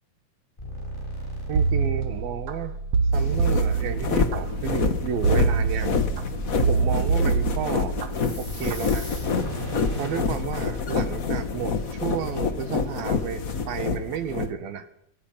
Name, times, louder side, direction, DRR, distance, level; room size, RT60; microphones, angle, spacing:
sound 1, 0.6-10.2, right 2 dB, 15° left, 7.6 m, -36 dB
voice 1, 1.5-2.8 3.1-5.9 6.7-8.0 8.4-9.1 10.0-14.9, right 9 dB, 80° right, 11 dB, 3.5 m, -32 dB
sound 2, 1.6-2.5 2.9-4.4 5.2-6.2 6.6-8.1 8.5-8.9, right 5 dB, 55° right, 2.5 m, -24 dB
sound 3, 3.1-14.5, left 4 dB, 60° left, 0.9 m, -27 dB
27.0 x 23.5 x 5.9 m, 0.70 s
omnidirectional pair, 4.1 m